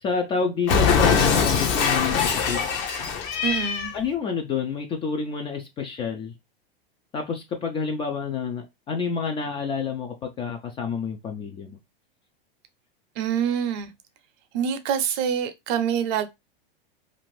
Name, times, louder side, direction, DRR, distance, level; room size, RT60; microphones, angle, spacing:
voice 1, 0.0-2.6 3.9-6.3 7.1-11.8, left 5 dB, 20° left, 0.3 m, -28 dB
Cat, 0.7-4.0, left 6 dB, 40° left, 0.7 m, -22 dB
voice 2, 3.4-3.9 13.2-13.9 14.5-16.3, right 8 dB, 45° right, 0.6 m, -25 dB
2.6 x 2.5 x 3.1 m
hypercardioid pair, 125°, 30 cm